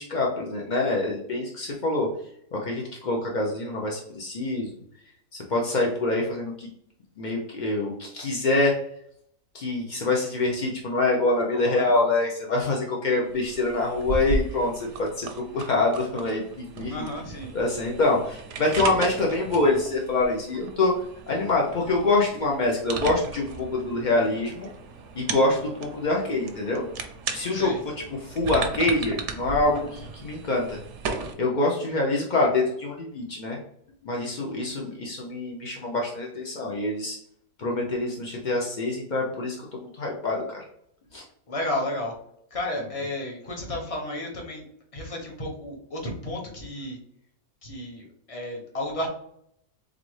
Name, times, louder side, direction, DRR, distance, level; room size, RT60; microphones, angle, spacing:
voice 1, 0.0-2.1 2.5-4.8 5.3-6.7 7.2-8.7 9.5-15.3 15.5-17.1 17.5-20.9 21.3-24.7 25.1-26.8 27.3-27.7 28.2-30.8 31.4-33.6 34.0-37.2 37.6-40.6 41.1-41.2, left 2 dB, 60° left, -1 dB, 0.4 m, -25 dB
voice 2, 11.5-11.9 16.9-17.5 27.5-27.8 34.6-34.8 41.5-42.1 42.5-44.6 44.9-47.0 47.6-49.1, left 1 dB, 30° left, 0 dB, 0.8 m, -32 dB
sound 1, 13.2-31.3, right 5 dB, 65° right, 0.8 m, -36 dB
3.9 x 3.5 x 3.2 m, 0.70 s
omnidirectional pair, 1.6 m